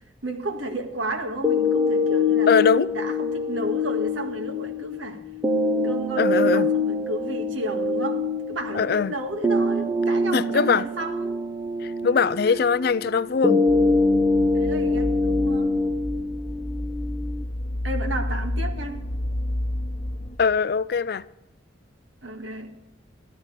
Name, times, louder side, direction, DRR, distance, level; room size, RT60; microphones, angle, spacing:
voice 1, 0.2-2.5 2.9-5.2 5.8-11.4 12.4-12.6 14.5-15.8 17.8-19.0 22.2-22.7, right 1 dB, 80° right, 1.8 m, -33 dB
sound 1, 1.4-17.4, left 2 dB, 15° right, 0.5 m, -24 dB
voice 2, 2.5-2.9 6.2-6.7 8.7-9.1 10.3-10.8 11.8-13.6 20.4-21.2, left 5 dB, 50° left, 0.4 m, -21 dB
sound 2, 13.7-20.4, left 1 dB, 35° left, 1.2 m, -30 dB
13.5 x 12.5 x 5.0 m
head